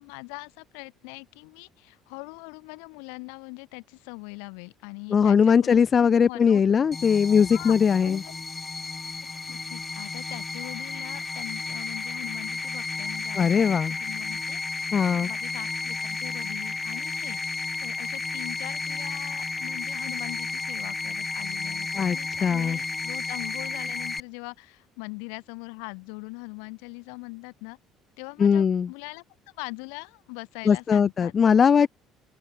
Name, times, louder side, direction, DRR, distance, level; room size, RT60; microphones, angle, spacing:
voice 1, 0.0-6.8 7.1-7.2 7.5-7.8 8.0-8.4 9.3-27.8 28.2-29.2 29.6-31.3, left 40 dB or more, 75° left, 2.6 m, -41 dB
voice 2, 5.1-8.2 13.4-14.0 14.9-15.3 21.9-22.8 28.4-28.9 30.6-31.9, left 7 dB, 40° left, 0.7 m, -20 dB
sound 1, 6.9-24.2, left 3 dB, 25° left, 0.3 m, -33 dB
open air
hypercardioid pair, 60°, 0 cm